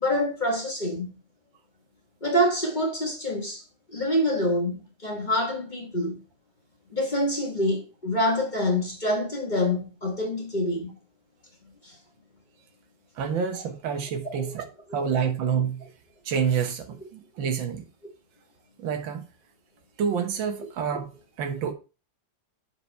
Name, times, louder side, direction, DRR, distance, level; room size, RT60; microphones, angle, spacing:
voice 1, 0.0-1.2 2.2-3.6 3.9-6.1 6.9-10.9 11.8-11.9 14.3-14.4, left 1 dB, 30° left, 1.2 m, -26 dB
voice 2, 13.2-14.7 14.9-15.8 16.3-17.8 18.8-19.2 20.0-21.1 21.4-21.7, right 7 dB, 90° right, 1.8 m, -28 dB
6.7 x 4.5 x 4.4 m
omnidirectional pair, 2.0 m